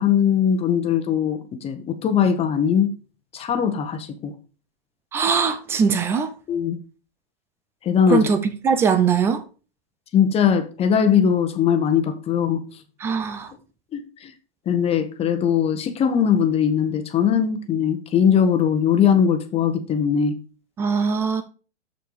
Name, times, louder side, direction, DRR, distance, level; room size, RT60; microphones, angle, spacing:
voice 1, 0.0-2.9 3.3-4.3 6.5-6.8 7.8-8.3 10.1-12.6 13.9-14.3 14.7-20.3, left 8 dB, 20° left, 1.1 m, -20 dB
voice 2, 5.1-6.3 8.1-8.4 8.6-9.4 13.0-13.5 20.8-21.4, right 6 dB, 10° right, 0.3 m, -21 dB
6.8 x 6.6 x 4.9 m
hypercardioid pair, 135°, 34 cm